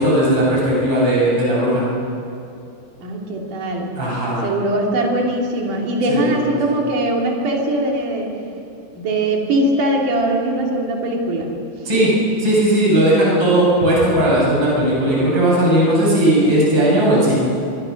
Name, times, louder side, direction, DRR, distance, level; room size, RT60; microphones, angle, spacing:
voice 1, 0.0-1.8 3.9-4.5 6.1-6.4 11.8-12.1 12.4-17.3, right 1 dB, 25° right, -6 dB, 8.4 m, -16 dB
voice 2, 3.0-3.9 4.4-8.3 9.0-11.5, right 1 dB, 50° right, -1 dB, 4.3 m, -21 dB
24.5 x 23.5 x 6.6 m, 2.6 s
omnidirectional pair, 5.2 m